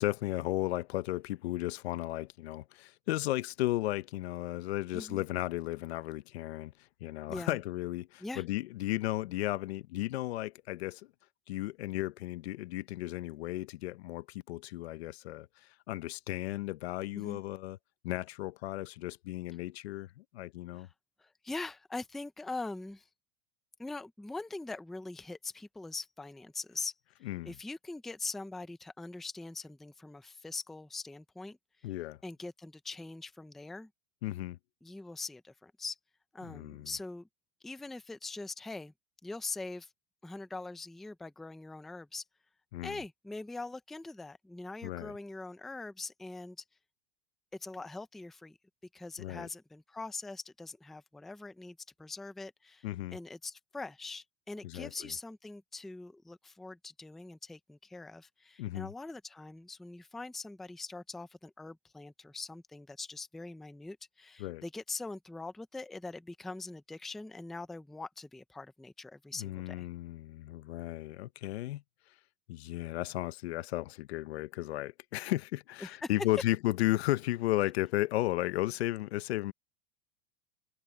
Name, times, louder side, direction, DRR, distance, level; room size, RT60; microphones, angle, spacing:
voice 1, 0.0-6.7 7.0-11.1 11.5-17.8 18.0-20.9 27.2-27.6 31.8-32.2 34.2-34.6 36.4-36.9 42.7-43.0 44.8-45.1 49.2-49.5 52.8-53.2 54.6-55.1 58.6-58.9 64.4-64.6 69.4-71.8 72.5-79.5, left 16 dB, 85° left, 0.9 m, -34 dB
voice 2, 4.9-5.2 7.3-7.6 8.2-8.4 17.2-17.4 20.8-20.9 21.2-23.0 23.8-26.9 27.4-31.6 32.2-33.9 34.8-36.0 36.3-37.3 37.6-38.9 39.2-39.9 40.2-42.2 42.8-46.6 47.5-48.6 48.9-52.9 53.1-69.9 75.8-76.1, left 3 dB, ahead, 0.4 m, -42 dB
supercardioid pair, 165°, 31 cm